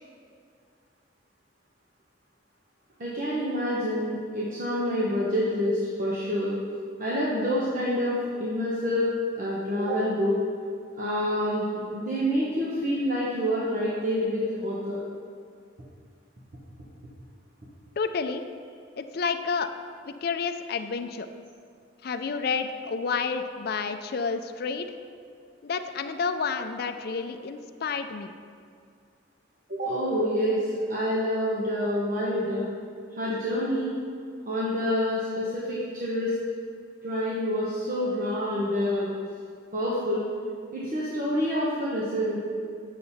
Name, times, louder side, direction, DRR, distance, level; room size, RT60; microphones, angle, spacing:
voice 1, 3.0-6.6 7.0-8.1 8.4-9.1 9.3-10.4 10.9-15.0 29.7-32.7 33.1-33.9 34.5-36.3 37.0-39.1 39.7-40.2 40.7-42.4, equal, 45° right, -7 dB, 1.1 m, -27 dB
voice 2, 18.0-18.4 19.0-19.7 20.1-21.3 22.0-24.9 25.6-28.3, left 5 dB, 55° left, 8 dB, 0.4 m, -30 dB
8.8 x 6.6 x 4.2 m, 2.3 s
head